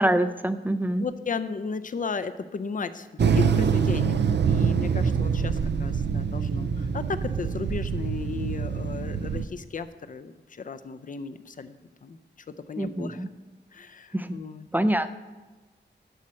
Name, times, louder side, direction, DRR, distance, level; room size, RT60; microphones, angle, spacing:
voice 1, 0.0-1.1 12.8-13.3 14.1-14.4 14.7-15.1, right 1 dB, 10° right, 11 dB, 0.4 m, -25 dB
voice 2, 1.0-11.7 12.0-12.2 12.5-13.2 13.7-14.7, left 5 dB, 45° left, 12 dB, 0.5 m, -35 dB
sound 1, 3.2-9.5, right 6 dB, 65° right, 0.5 m, -25 dB
11.5 x 4.4 x 7.5 m, 1.2 s
wide cardioid pair, 135°, 19 cm